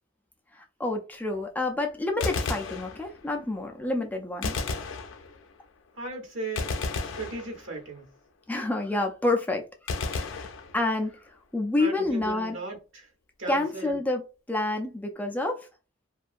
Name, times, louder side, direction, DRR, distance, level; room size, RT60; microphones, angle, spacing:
voice 1, 0.5-4.6 8.5-9.7 10.0-10.5 10.7-12.6 13.5-14.2 14.5-15.7, left 2 dB, 10° left, 0.3 m, -28 dB
Gunshot gunfire, 2.1-3.4 4.4-5.6 6.6-8.0 9.9-11.2, left 4 dB, 70° left, 0.4 m, -33 dB
voice 2, 6.0-6.7 7.0-8.1 11.8-13.1 13.4-13.9, right 2 dB, 75° right, 0.9 m, -37 dB
2.7 x 2.2 x 2.4 m
head